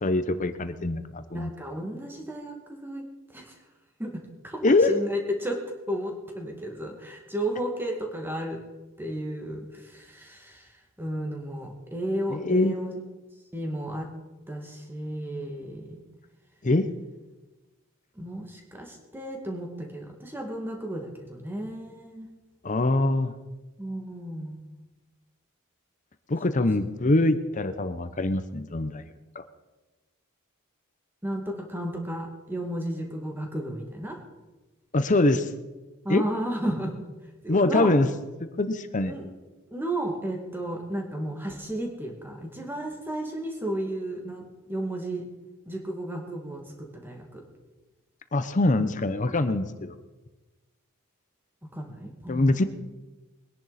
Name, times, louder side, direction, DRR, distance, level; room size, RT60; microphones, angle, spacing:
voice 1, 0.0-1.5 4.6-5.0 12.3-12.8 16.6-16.9 22.6-23.3 26.3-29.0 29.3-29.4 34.9-35.5 36.1-36.2 37.5-38.1 38.4-39.1 48.3-49.9 52.3-52.6, left 2 dB, 35° left, 11 dB, 0.7 m, -23 dB
voice 2, 1.3-3.1 3.3-3.5 4.0-8.6 9.0-13.0 13.5-14.1 14.5-16.0 18.2-22.3 23.8-24.6 31.2-34.2 36.0-37.1 37.4-37.9 39.1-39.3 39.7-45.2 45.7-47.4 51.7-52.6, right 1 dB, 10° right, 1 dB, 2.1 m, -33 dB
22.0 x 10.5 x 4.2 m, 1.2 s
head